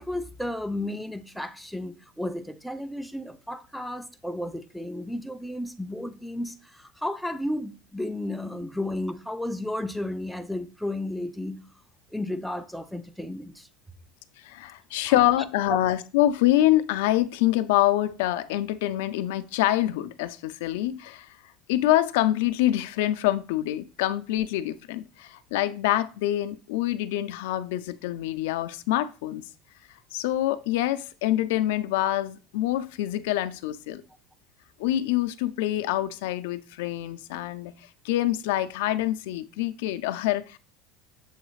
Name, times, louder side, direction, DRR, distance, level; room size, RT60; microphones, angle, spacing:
voice 1, 0.0-11.6 12.1-13.7 15.1-15.2 15.7-15.8, left 1 dB, ahead, 0.4 m, -33 dB
voice 2, 14.4-21.3 21.7-29.4 30.1-34.0 34.8-37.7 38.0-40.6, left 14 dB, 85° left, 0.3 m, -25 dB
6.9 x 2.4 x 3.1 m
supercardioid pair, 135°, 0 cm